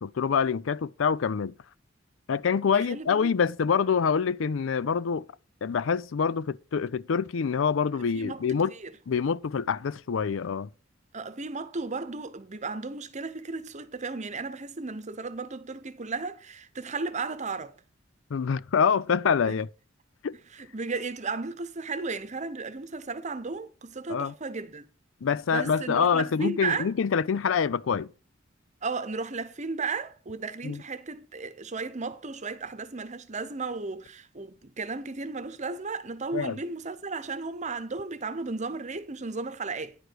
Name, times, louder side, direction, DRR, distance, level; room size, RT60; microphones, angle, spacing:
voice 1, 0.0-1.5 2.3-5.2 5.6-8.7 9.1-10.7 18.3-19.7 20.2-20.3 24.1-24.3 25.2-28.1 30.6-30.8 36.3-36.6, left 6 dB, 75° left, 0.4 m, -26 dB
voice 2, 2.7-3.3 8.1-8.9 11.1-17.7 19.5-19.6 20.5-24.9 25.5-26.9 28.8-40.0, right 4 dB, 35° right, 0.9 m, -34 dB
10.0 x 4.9 x 6.2 m
head